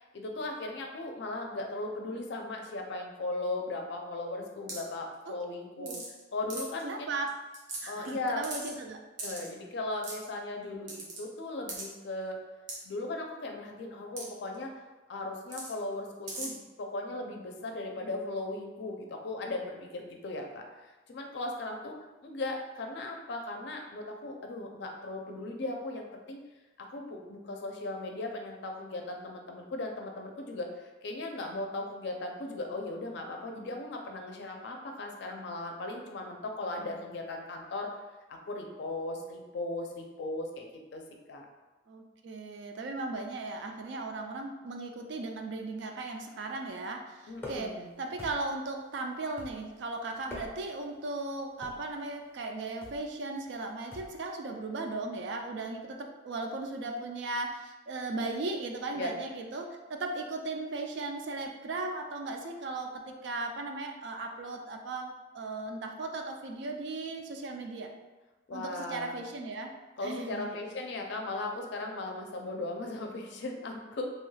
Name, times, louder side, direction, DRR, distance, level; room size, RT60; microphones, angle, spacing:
voice 1, 0.0-5.9 6.3-7.1 7.9-8.4 9.2-12.4 12.8-14.7 15.1-20.6 21.1-22.0 22.2-26.4 26.8-37.9 38.3-41.0 41.3-41.5 47.3-47.9 58.9-59.1 68.5-69.2 70.0-74.1, left 2 dB, 65° left, 2 dB, 0.4 m, -37 dB
sound 1, 4.7-4.9 5.9-6.2 6.5-6.8 7.3-7.4 7.5-8.1 8.4-8.7 9.2-9.5 10.0-10.3 10.9-11.2 11.7-11.8 12.7-12.8 14.2-14.3 14.5-14.6 15.5-15.7 16.3-16.5, right 3 dB, 90° right, 0.8 m, -38 dB
voice 2, 6.8-7.3 7.8-9.0 41.9-67.9 68.5-69.7 70.0-70.6, right 2 dB, 65° right, 3 dB, 0.4 m, -37 dB
sound 2, 47.4-47.8 48.2-48.7 49.4-49.8 50.2-50.8 51.6-51.9 52.8-53.1 53.9-54.2, left 2 dB, 10° left, 0.5 m, -45 dB
2.8 x 2.2 x 3.1 m, 1.2 s
head